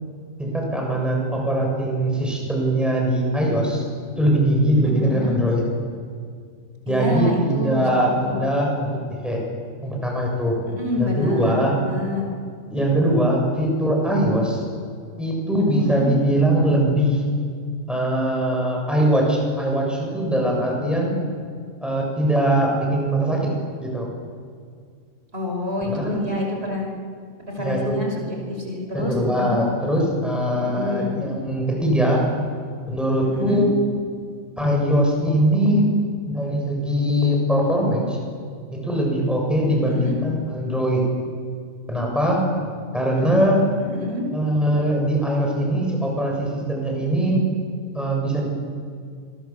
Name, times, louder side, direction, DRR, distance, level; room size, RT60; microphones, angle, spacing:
voice 1, 0.4-3.8 4.2-5.6 6.9-9.4 9.8-10.6 11.0-11.8 12.7-14.6 15.2-17.2 17.9-21.2 21.8-23.5 23.8-24.1 25.8-26.2 27.6-28.0 28.9-32.2 32.9-33.7 34.6-35.9 36.3-38.2 38.7-41.0 41.9-42.5 42.9-43.6 44.3-47.4 47.9-48.5, right 1 dB, ahead, -1 dB, 7.3 m, -21 dB
voice 2, 4.8-5.4 6.9-8.4 10.7-12.2 15.5-16.2 25.3-26.9 27.5-29.6 30.6-31.2 33.2-33.6 39.7-40.2 43.2-43.4 43.8-44.2, left 2 dB, 50° right, 0 dB, 5.8 m, -28 dB
27.5 x 22.5 x 7.4 m, 2.1 s
omnidirectional pair, 1.4 m